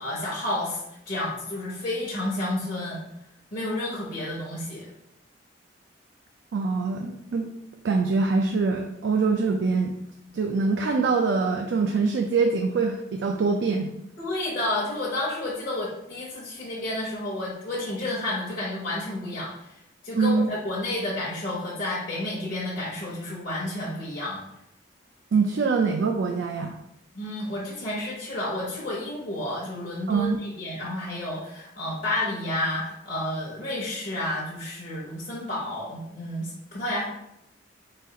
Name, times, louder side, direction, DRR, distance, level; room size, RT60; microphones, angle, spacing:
voice 1, 0.0-3.0 3.5-4.9 14.2-19.8 20.0-24.4 27.1-37.0, left 1 dB, 45° left, -7 dB, 0.9 m, -31 dB
voice 2, 6.5-7.5 7.8-9.9 10.3-13.9 20.1-20.5 25.3-26.7 30.1-30.4, right 4 dB, 65° right, 3 dB, 0.3 m, -24 dB
4.0 x 2.4 x 3.8 m, 0.80 s
head